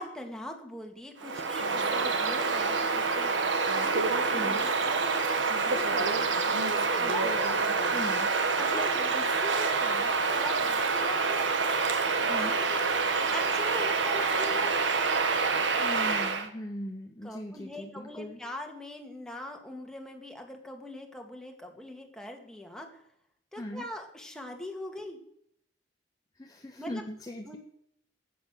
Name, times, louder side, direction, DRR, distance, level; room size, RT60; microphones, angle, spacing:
voice 1, 0.0-7.6 8.6-11.8 12.1-12.8 13.3-14.8 17.2-23.0 23.5-25.2 26.8-27.0 27.5-27.6, left 1 dB, 5° left, 2 dB, 1.9 m, -42 dB
Bird vocalization bird call bird song, 1.2-16.5, right 4 dB, 80° right, 1.4 m, -27 dB
voice 2, 4.3-4.7 7.0-8.3 8.6-9.1 12.3-12.6 15.8-18.4 23.6-23.8 26.4-27.6, left 1 dB, 20° left, 4 dB, 0.8 m, -40 dB
13.5 x 8.6 x 6.4 m, 0.74 s
head